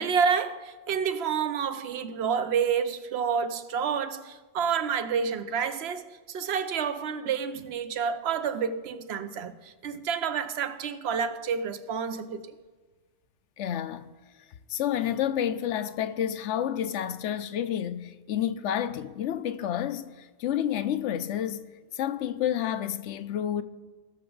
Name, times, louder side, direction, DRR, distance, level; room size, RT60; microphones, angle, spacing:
voice 1, 0.0-12.5, right 6 dB, 65° right, 0.9 m, -29 dB
voice 2, 13.6-14.1 14.7-21.6 21.9-23.6, left 10 dB, 80° left, 0.9 m, -29 dB
19.0 x 6.8 x 3.9 m
omnidirectional pair, 1.2 m